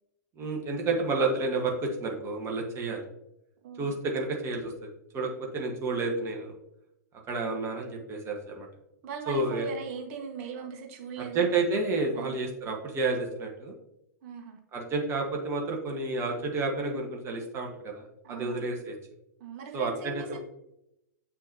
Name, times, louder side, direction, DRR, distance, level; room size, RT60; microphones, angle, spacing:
voice 1, 0.4-3.0 3.8-6.5 7.3-8.7 9.3-9.7 11.2-13.7 14.7-18.9 19.7-20.4, right 3 dB, 25° right, 1 dB, 1.4 m, -30 dB
voice 2, 9.0-11.4 12.1-12.3 14.2-14.6 18.2-18.8 19.4-20.4, right 6 dB, 45° right, 2 dB, 1.6 m, -39 dB
7.6 x 6.2 x 2.8 m, 0.82 s
figure-of-eight pair, 100°, 10 cm